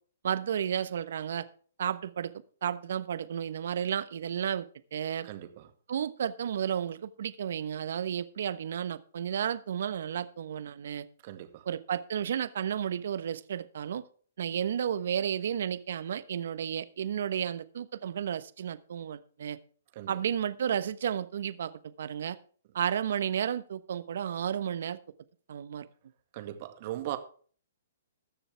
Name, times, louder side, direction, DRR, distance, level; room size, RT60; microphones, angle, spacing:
voice 1, 0.2-1.4 1.8-2.3 2.6-5.3 5.9-11.1 11.6-14.0 14.4-19.6 20.1-22.4 22.7-25.0 25.5-25.9, right 9 dB, 65° right, 1.1 m, -32 dB
voice 2, 5.2-5.6 11.2-11.6 20.0-20.2 26.3-27.2, right 13 dB, 45° right, 2.0 m, -38 dB
20.5 x 7.0 x 3.5 m
hypercardioid pair, 130°, 0 cm